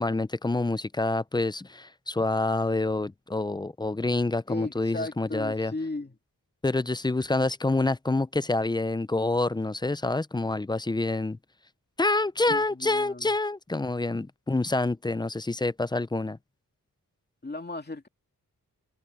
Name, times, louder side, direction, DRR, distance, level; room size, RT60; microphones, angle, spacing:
voice 1, 0.0-5.7 6.6-11.4 12.0-16.4, left 2 dB, 15° left, 0.4 m, -27 dB
voice 2, 4.5-6.2 12.5-13.3 17.4-18.1, left 2 dB, 30° left, 2.5 m, -35 dB
wide cardioid pair, 90°, 33 cm